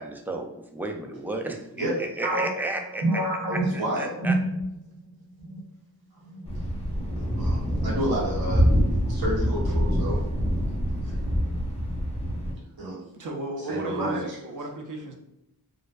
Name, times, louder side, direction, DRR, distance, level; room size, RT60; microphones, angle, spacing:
voice 1, 0.0-4.3, right 2 dB, 5° right, 3 dB, 0.3 m, -33 dB
sound 1, 2.2-5.1 5.4-5.6 6.2-6.7, right 1 dB, 85° right, 0.7 m, -28 dB
voice 2, 3.7-4.1 7.2-8.6 9.1-10.2 11.0-11.1 12.8-13.0 13.7-14.2, right 1 dB, 65° right, -5 dB, 1.0 m, -30 dB
Thunder, 6.5-12.5, equal, 15° left, 0.7 m, -25 dB
voice 3, 13.1-15.1, right 1 dB, 50° right, 3 dB, 0.6 m, -34 dB
2.5 x 2.2 x 2.2 m, 0.86 s
cardioid pair, 45°, 39 cm